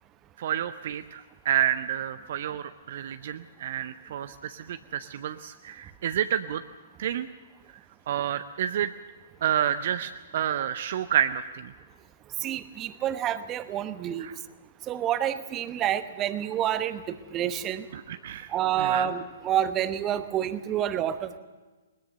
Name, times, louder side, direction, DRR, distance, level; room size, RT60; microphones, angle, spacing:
voice 1, 0.4-6.6 7.0-7.3 8.1-8.9 9.4-11.7 14.2-14.3 17.9-18.5 18.8-19.1, right 10 dB, 45° right, 11 dB, 0.6 m, -29 dB
voice 2, 12.4-14.3 14.8-17.9 18.5-21.4, right 10 dB, 20° right, 12 dB, 1.0 m, -28 dB
21.0 x 20.5 x 6.8 m, 1.3 s
figure-of-eight pair, 120°, 0 cm